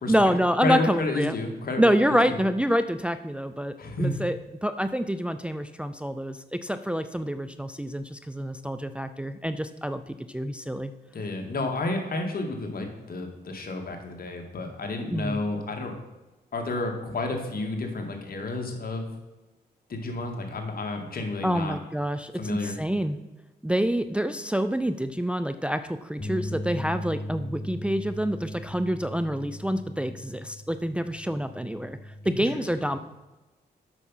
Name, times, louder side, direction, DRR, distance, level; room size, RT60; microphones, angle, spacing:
voice 1, 0.1-1.4 1.8-10.9 15.1-15.4 21.4-23.2 23.6-32.0 32.2-33.0, equal, 5° right, 10 dB, 0.5 m, -27 dB
voice 2, 0.6-2.4 3.8-4.1 11.1-15.9 16.5-19.1 19.9-21.8 22.4-22.8 32.2-32.6, left 2 dB, 60° left, 3 dB, 1.9 m, -31 dB
sound 1, 26.2-32.4, left 1 dB, 30° left, 1.4 m, -38 dB
8.1 x 6.0 x 5.6 m, 1.1 s
cardioid pair, 65°, 17 cm